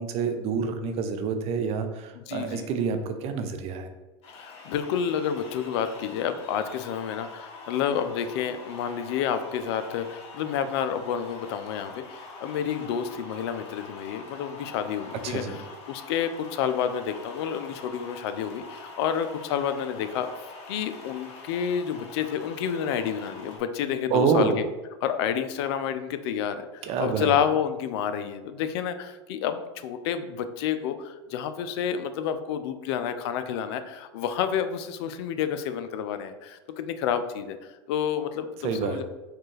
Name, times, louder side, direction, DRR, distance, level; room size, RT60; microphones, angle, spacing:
voice 1, 0.0-3.9 15.2-15.6 24.1-24.6 26.8-27.4 38.6-39.0, right 5 dB, 40° right, 7 dB, 0.5 m, -27 dB
voice 2, 2.2-2.7 4.3-15.6 15.9-20.3 20.7-24.5 25.0-39.0, left 8 dB, 60° left, 10 dB, 0.4 m, -29 dB
sound 1, 4.2-23.6, left 3 dB, 40° left, 1.0 m, -44 dB
4.4 x 2.4 x 3.2 m, 1.1 s
hypercardioid pair, 105°, 15 cm